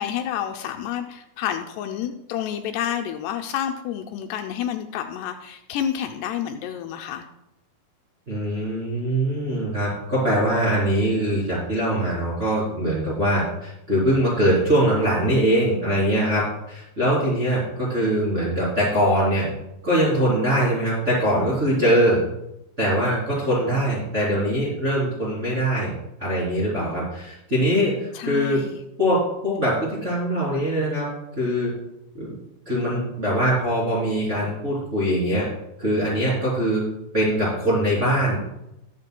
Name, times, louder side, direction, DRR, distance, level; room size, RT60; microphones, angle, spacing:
voice 1, 0.0-7.3 28.1-28.8, left 10 dB, 85° left, 5 dB, 2.6 m, -29 dB
voice 2, 8.3-16.4 16.7-19.5 19.8-22.2 22.8-25.9 26.2-28.7 29.0-31.1 31.4-31.7 32.1-32.3 32.7-35.5 35.8-36.8 37.1-38.4, equal, 20° right, -7 dB, 2.7 m, -22 dB
19.5 x 7.5 x 2.2 m, 0.87 s
omnidirectional pair, 4.8 m